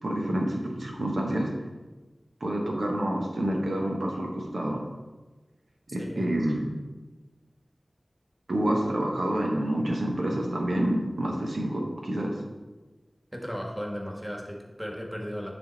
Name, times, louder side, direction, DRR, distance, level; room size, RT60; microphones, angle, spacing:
voice 1, 0.0-1.5 2.4-4.8 5.9-6.7 8.5-12.3, right 1 dB, 85° right, 0 dB, 1.0 m, -28 dB
voice 2, 6.0-6.3 13.3-15.5, equal, 5° right, 0 dB, 1.4 m, -35 dB
9.9 x 3.6 x 4.0 m, 1.2 s
wide cardioid pair, 50°, 0 cm